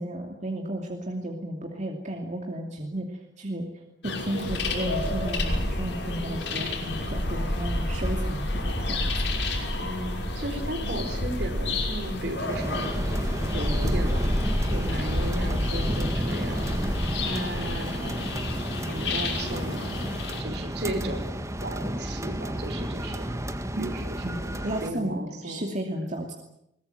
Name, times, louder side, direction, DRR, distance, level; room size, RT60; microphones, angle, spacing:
voice 1, 0.0-3.7 4.0-9.0 23.8-23.9 24.2-24.4 24.6-26.3, right 1 dB, 45° right, 2 dB, 2.7 m, -33 dB
sound 1, 4.0-20.4, left 1 dB, 80° left, 6.0 m, -29 dB
voice 2, 9.8-13.0 13.5-16.7 17.2-18.2 18.9-20.1 20.4-23.3 23.8-25.6, right 1 dB, 65° right, 5 dB, 5.1 m, -35 dB
sound 2, 12.5-24.9, right 1 dB, 15° right, 1.8 m, -32 dB
22.5 x 20.0 x 9.3 m, 0.79 s
head